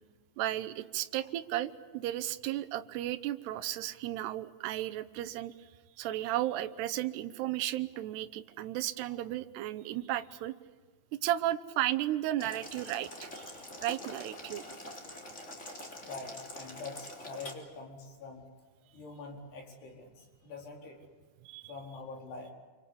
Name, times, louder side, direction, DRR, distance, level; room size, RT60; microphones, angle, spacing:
voice 1, 0.4-5.7 6.0-10.5 11.1-13.5 13.8-14.6 21.4-21.7, right 14 dB, 75° right, 11 dB, 2.7 m, -34 dB
Boiling, 12.4-17.5, left 1 dB, 15° left, 3.1 m, -45 dB
voice 2, 16.0-18.4 18.9-21.0 21.7-22.5, left 3 dB, 60° left, 1 dB, 6.4 m, -45 dB
29.0 x 24.5 x 8.5 m, 1.4 s
omnidirectional pair, 5.5 m